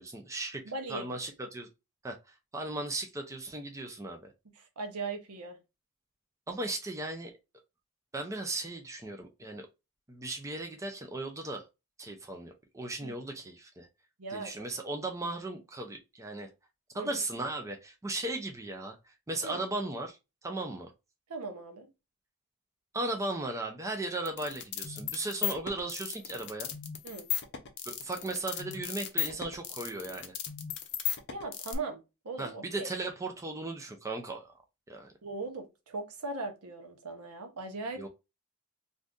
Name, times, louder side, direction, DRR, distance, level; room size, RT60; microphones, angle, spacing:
voice 1, 0.0-0.6 0.9-1.7 2.0-4.3 6.5-7.3 8.1-9.7 10.1-11.7 12.0-13.9 14.3-16.5 16.9-20.9 22.9-26.7 27.9-30.4 32.4-34.5 34.9-35.1 38.0-38.1, right 2 dB, 15° right, 0.4 m, -37 dB
voice 2, 0.6-1.1 4.6-5.6 13.0-13.1 14.2-14.7 16.9-17.1 19.4-19.6 21.3-21.9 27.0-27.3 31.3-32.9 35.2-38.1, right 3 dB, 80° right, 0.8 m, -39 dB
sound 1, 24.3-31.8, left 10 dB, 50° left, 0.6 m, -35 dB
2.6 x 2.5 x 3.4 m
head